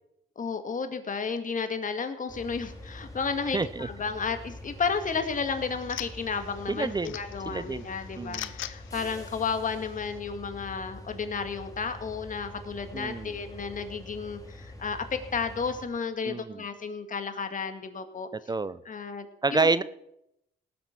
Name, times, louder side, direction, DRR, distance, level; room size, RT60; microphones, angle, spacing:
voice 1, 0.4-18.3 18.9-19.3 19.5-19.8, left 5 dB, 40° left, 8 dB, 1.9 m, -32 dB
sound 1, 2.3-15.8, left 1 dB, 15° left, 2.4 m, -45 dB
voice 2, 3.5-3.9 6.7-7.2 7.4-7.9 8.2-8.5 12.9-13.3 16.2-16.6 18.5-18.8 19.4-19.8, right 3 dB, 20° right, 16 dB, 0.6 m, -28 dB
sound 2, 4.8-10.2, left 13 dB, 80° left, 0.7 m, -44 dB
18.0 x 7.8 x 5.9 m, 0.81 s
cardioid pair, 90°, 20 cm